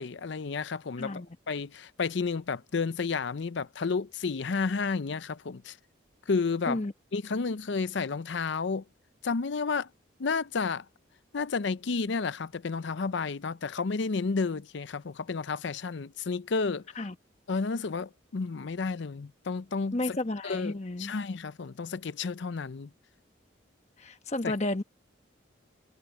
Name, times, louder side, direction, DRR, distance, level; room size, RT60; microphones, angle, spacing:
voice 1, 0.0-5.8 6.3-6.8 7.1-8.8 9.2-9.9 10.2-10.8 11.3-16.8 17.5-20.2 20.4-22.9 24.4-24.5, left 4 dB, 65° left, 0.5 m, -31 dB
voice 2, 19.9-21.1 24.0-24.8, left 2 dB, 35° left, 1.1 m, -32 dB
head